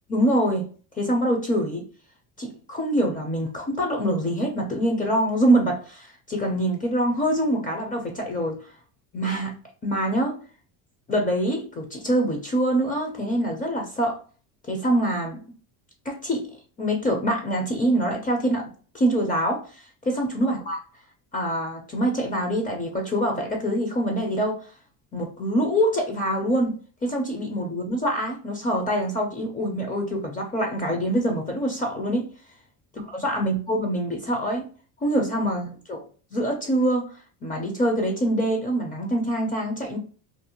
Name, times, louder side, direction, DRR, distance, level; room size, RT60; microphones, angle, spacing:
voice 1, 0.1-0.7 1.0-1.8 2.4-8.6 9.1-9.5 9.8-10.4 11.1-14.2 14.7-15.4 16.1-16.5 16.8-18.7 18.9-19.6 20.1-20.8 21.3-24.6 25.1-32.3 33.1-34.7 35.0-36.0 36.3-37.1 37.4-40.0, right 1 dB, 20° left, 1 dB, 0.5 m, -25 dB
2.6 x 2.1 x 2.8 m, 0.39 s
cardioid pair, 125°, 42 cm